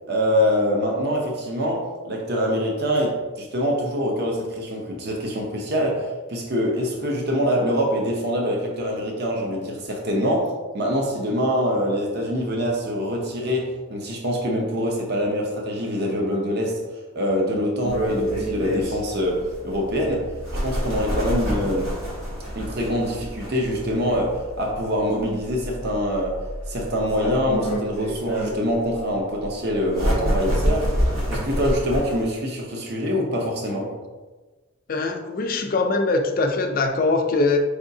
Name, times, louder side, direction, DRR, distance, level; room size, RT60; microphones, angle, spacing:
voice 1, 0.1-16.8 17.1-20.3 20.6-21.9 22.5-26.4 26.7-30.9 31.3-33.9, equal, 50° right, 0 dB, 0.6 m, -24 dB
sound 1, 17.8-32.3, equal, 75° right, 1.4 m, -28 dB
voice 2, 34.9-37.6, left 3 dB, 40° left, 4 dB, 0.4 m, -22 dB
4.7 x 3.4 x 2.6 m, 1.3 s
head